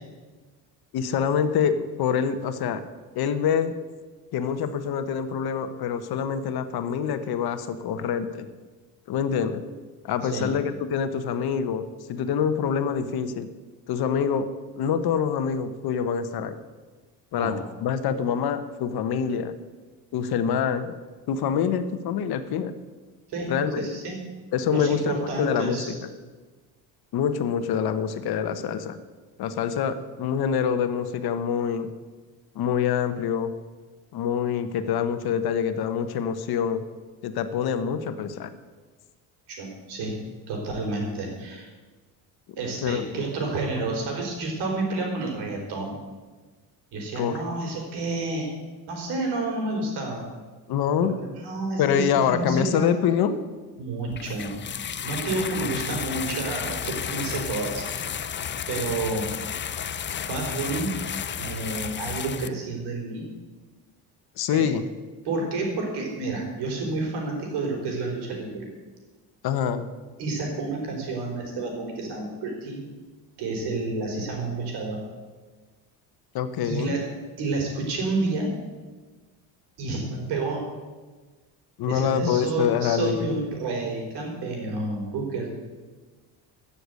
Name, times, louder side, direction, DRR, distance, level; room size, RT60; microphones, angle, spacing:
voice 1, 0.9-2.8 3.1-3.7 4.3-8.5 9.1-9.6 10.0-13.5 13.9-14.5 14.8-16.6 17.3-19.5 20.1-20.9 21.3-22.7 23.5-23.9 24.5-26.0 27.1-29.0 29.4-31.9 32.5-33.5 34.1-36.8 37.2-38.5 42.8-43.1 43.8-43.9 47.2-47.4 50.7-51.1 51.8-53.4 64.4-64.9 69.4-69.9 76.3-76.9 81.8-83.3, left 7 dB, 65° left, 10 dB, 1.2 m, -25 dB
voice 2, 10.2-10.5 17.3-17.6 23.3-24.2 24.7-26.0 39.5-40.2 40.5-41.7 42.6-46.0 46.9-48.5 48.9-50.2 51.0-52.9 53.8-54.5 55.0-57.8 58.7-59.3 60.1-61.0 61.4-63.2 64.5-64.7 65.2-68.7 70.2-72.8 73.4-75.0 76.6-77.1 77.4-78.5 79.8-80.7 81.9-85.5, right 3 dB, 70° right, 1 dB, 4.7 m, -30 dB
sound 1, 54.1-62.5, left 8 dB, 30° left, 0.6 m, -32 dB
14.5 x 7.1 x 8.3 m, 1.3 s
cardioid pair, 110°, 41 cm